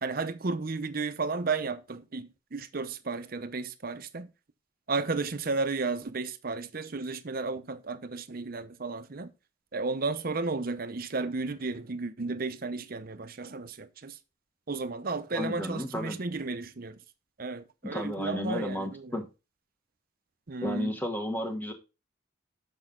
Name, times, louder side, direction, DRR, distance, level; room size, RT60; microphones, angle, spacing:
voice 1, 0.0-4.3 4.9-9.3 9.7-14.2 14.7-17.0 17.4-19.2 20.5-21.0, right 3 dB, 45° right, 0.7 m, -33 dB
voice 2, 15.3-16.2 17.8-19.2 20.6-21.7, left 1 dB, 10° left, 1.2 m, -32 dB
6.8 x 6.3 x 3.7 m
head